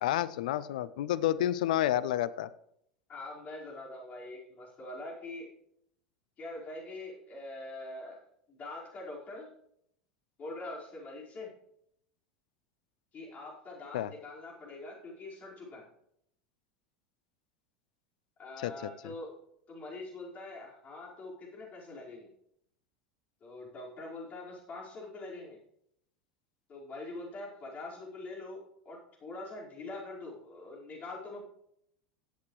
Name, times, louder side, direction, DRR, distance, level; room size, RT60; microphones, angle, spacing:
voice 1, 0.0-2.5 13.9-14.1 18.6-18.9, left 12 dB, 70° left, 17 dB, 0.5 m, -30 dB
voice 2, 3.1-5.5 6.4-8.2 8.5-9.5 10.4-11.5 13.1-15.9 18.4-19.3 19.7-22.3 23.4-25.6 26.7-31.4, left 2 dB, 35° left, -4 dB, 4.9 m, -44 dB
16.5 x 8.2 x 3.2 m, 0.73 s
hypercardioid pair, 80°, 4 cm